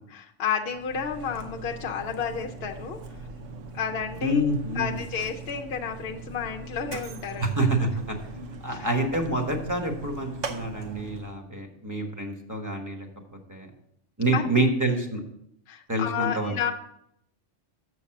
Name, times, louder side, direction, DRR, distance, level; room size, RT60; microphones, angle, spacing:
voice 1, 0.1-3.0 3.7-4.4 4.8-7.6 8.3-8.9 14.3-14.7 15.7-16.7, left 7 dB, 60° left, 2 dB, 0.8 m, -31 dB
Mechanisms, 0.6-11.4, right 3 dB, 85° right, 1.1 m, -40 dB
voice 2, 4.2-5.0 7.4-8.1 8.6-13.1 13.5-13.7 14.2-15.2 15.9-16.7, right 1 dB, 15° right, 2 dB, 1.1 m, -27 dB
6.9 x 6.4 x 5.7 m, 0.75 s
omnidirectional pair, 1.2 m